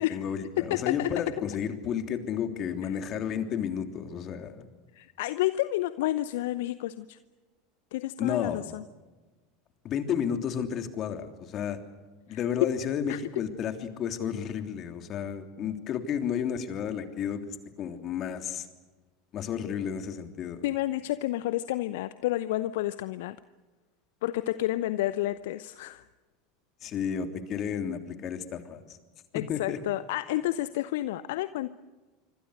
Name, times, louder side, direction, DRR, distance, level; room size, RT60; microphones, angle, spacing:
voice 1, 0.0-4.7 8.2-8.6 9.8-11.8 12.3-18.7 19.3-20.6 26.8-29.0 29.3-29.8, left 8 dB, 40° left, 7 dB, 3.2 m, -32 dB
voice 2, 0.6-1.1 2.8-2.9 5.0-7.2 7.9-8.8 12.3-12.7 13.1-13.2 20.6-23.4 24.2-26.0 29.3-31.7, left 15 dB, 65° left, 15 dB, 0.7 m, -30 dB
26.0 x 25.5 x 6.5 m, 1.2 s
figure-of-eight pair, 80°, 0 cm